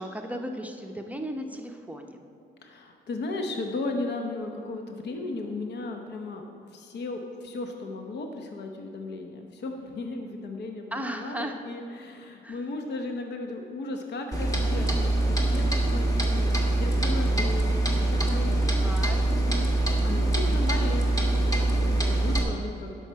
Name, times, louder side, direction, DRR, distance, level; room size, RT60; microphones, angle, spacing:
voice 1, 0.0-2.2 10.9-11.6 12.4-12.6 18.8-19.2, equal, 5° right, 3 dB, 0.7 m, -35 dB
voice 2, 2.6-6.4 6.7-23.1, left 2 dB, 60° left, 4 dB, 0.9 m, -36 dB
Clock, 14.3-22.4, right 2 dB, 15° left, 1.6 m, -24 dB
11.5 x 5.7 x 4.6 m, 2.8 s
cardioid pair, 90°, 20 cm